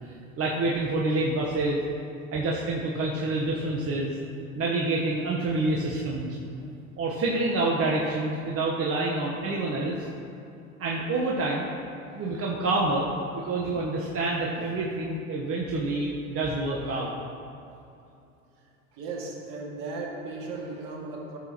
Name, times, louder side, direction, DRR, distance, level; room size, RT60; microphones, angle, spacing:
voice 1, 0.0-1.8 2.3-4.2 4.5-6.3 7.0-10.1 10.8-11.7 12.1-17.1, right 2 dB, 35° right, -3 dB, 1.2 m, -27 dB
voice 2, 18.9-21.4, right 3 dB, 55° right, -1 dB, 2.1 m, -36 dB
14.0 x 6.8 x 3.0 m, 2.7 s
hypercardioid pair, 80°, 42 cm